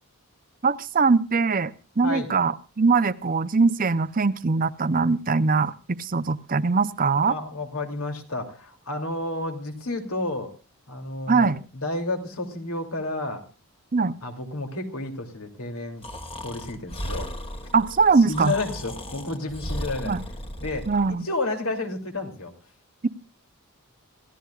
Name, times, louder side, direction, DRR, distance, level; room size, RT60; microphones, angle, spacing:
voice 1, 0.6-7.4 11.3-11.6 13.9-14.1 17.7-18.5 20.1-20.2 20.9-21.2, right 4 dB, 40° right, 13 dB, 0.6 m, -22 dB
voice 2, 7.3-10.5 10.9-13.4 14.2-16.1 16.4-17.3 18.2-20.2 20.6-22.5, left 2 dB, 70° left, 4 dB, 2.9 m, -31 dB
Breathing, 16.0-21.1, equal, 25° left, 1.5 m, -35 dB
27.0 x 15.0 x 2.4 m, 0.33 s
head